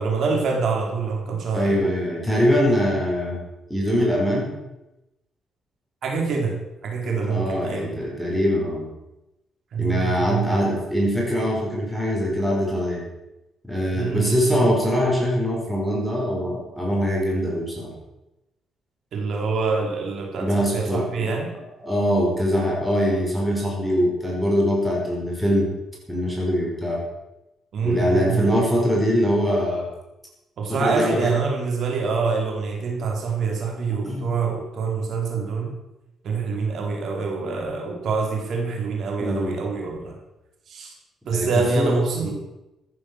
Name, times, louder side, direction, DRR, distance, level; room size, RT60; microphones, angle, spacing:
voice 1, 0.0-1.8 6.0-6.5 6.8-7.9 9.7-10.6 13.9-14.6 19.1-21.5 27.7-28.6 30.6-35.7 36.2-40.2 40.7-40.9 41.3-42.3, right 4 dB, 65° right, 0 dB, 3.8 m, -25 dB
voice 2, 1.5-3.4 3.7-4.5 7.0-8.9 9.8-13.0 13.6-17.9 20.4-21.3 21.8-25.7 26.1-27.0 27.8-29.9 30.7-31.3 33.9-34.3 39.2-39.6 41.3-42.3, equal, ahead, -3 dB, 5.4 m, -23 dB
15.0 x 9.9 x 6.4 m, 0.96 s
cardioid pair, 90°, 0 cm